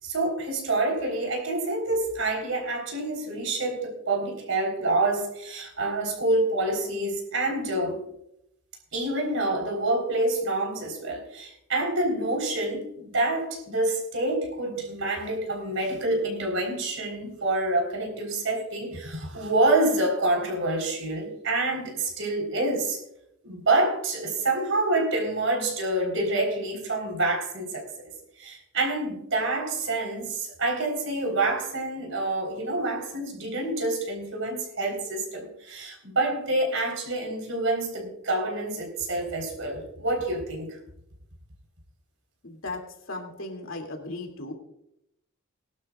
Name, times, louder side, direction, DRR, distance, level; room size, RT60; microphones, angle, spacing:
voice 1, 0.0-8.0 8.9-23.0 23.4-27.9 28.4-40.8, right 2 dB, 65° right, 1 dB, 4.1 m, -27 dB
voice 2, 42.4-42.8 43.1-44.5, left 2 dB, 65° left, 3 dB, 2.6 m, -36 dB
20.5 x 12.0 x 2.4 m, 0.79 s
head